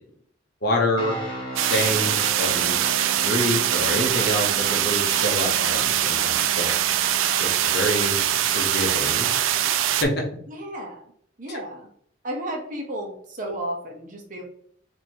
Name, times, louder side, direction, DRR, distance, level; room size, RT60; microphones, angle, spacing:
voice 1, 0.6-1.1 1.6-2.8 3.2-6.7 7.4-8.2 8.5-9.3 9.9-10.2 11.5-11.6, left 1 dB, 55° left, 0 dB, 0.7 m, -27 dB
sound 1, 1.0-9.2, right 3 dB, 25° left, 1.0 m, -38 dB
sound 2, 1.6-10.0, right 11 dB, 85° right, 0.3 m, -23 dB
voice 2, 10.5-11.0 11.4-11.9 12.2-14.4, right 1 dB, 40° right, 1 dB, 0.9 m, -33 dB
3.0 x 2.7 x 4.4 m, 0.63 s
head